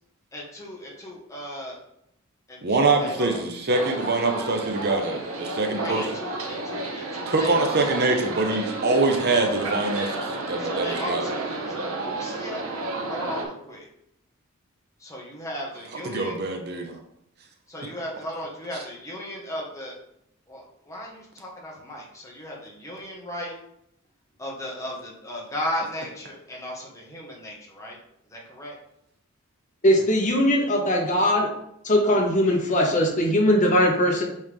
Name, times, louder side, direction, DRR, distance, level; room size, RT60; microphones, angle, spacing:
voice 1, 0.3-1.7 2.5-3.4 5.8-7.5 9.3-9.7 10.6-12.7 13.1-13.8 15.0-16.4 17.7-20.0 20.5-23.5 24.4-28.0 28.3-28.8, equal, 15° left, -3 dB, 1.5 m, -36 dB
voice 2, 2.6-6.1 7.3-11.3 16.0-16.9, right 3 dB, 50° right, 4 dB, 0.8 m, -24 dB
sound 1, 3.7-13.4, right 2 dB, 75° right, 1.0 m, -31 dB
voice 3, 29.8-31.5 31.8-34.2, equal, 35° left, 0 dB, 1.2 m, -20 dB
8.0 x 3.6 x 3.6 m, 0.77 s
head